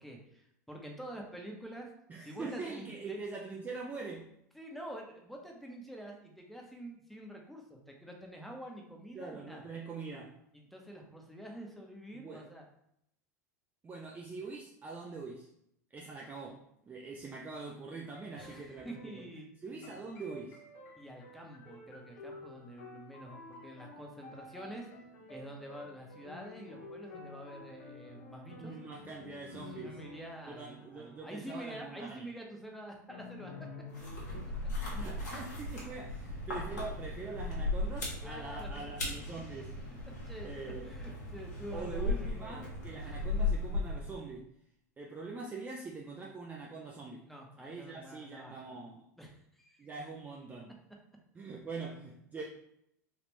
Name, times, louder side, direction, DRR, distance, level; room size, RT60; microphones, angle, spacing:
voice 1, 0.0-1.9 2.2-3.2 4.5-9.7 10.5-12.6 18.4-20.0 21.0-24.9 25.3-28.7 29.6-33.7 38.2-38.9 39.2-39.3 40.2-40.5 40.8-42.7 43.0-43.1 47.3-48.8 49.2-49.9, right 1 dB, ahead, 0 dB, 0.8 m, -47 dB
voice 2, 2.1-4.3 9.1-10.4 12.1-12.5 13.8-15.5 15.9-19.2 19.6-20.6 28.6-30.0 30.5-32.3 34.9-39.7 40.4-40.9 41.7-44.5 45.0-47.3 47.6-49.0 49.8-50.8 51.4-52.4, right 4 dB, 20° right, -1 dB, 0.4 m, -43 dB
sound 1, 18.1-19.3 19.8-31.5 33.1-34.4, left 3 dB, 60° left, 0.9 m, -51 dB
sound 2, 33.9-44.3, left 2 dB, 85° left, 1.1 m, -37 dB
3.5 x 2.4 x 3.1 m, 0.75 s
hypercardioid pair, 90°, 9 cm